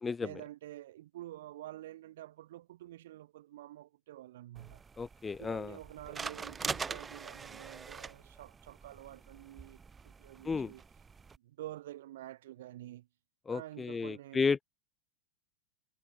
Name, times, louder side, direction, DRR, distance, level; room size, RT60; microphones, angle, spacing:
voice 1, 0.2-4.8 5.4-10.8 11.4-13.1 13.5-14.6, right 14 dB, 75° right, 0.9 m, -48 dB
sound 1, 4.6-11.4, right 5 dB, 15° right, 0.7 m, -44 dB
voice 2, 5.0-5.8 10.4-10.7 13.5-14.6, left 5 dB, 15° left, 0.4 m, -33 dB
supercardioid pair, 135°, 0 cm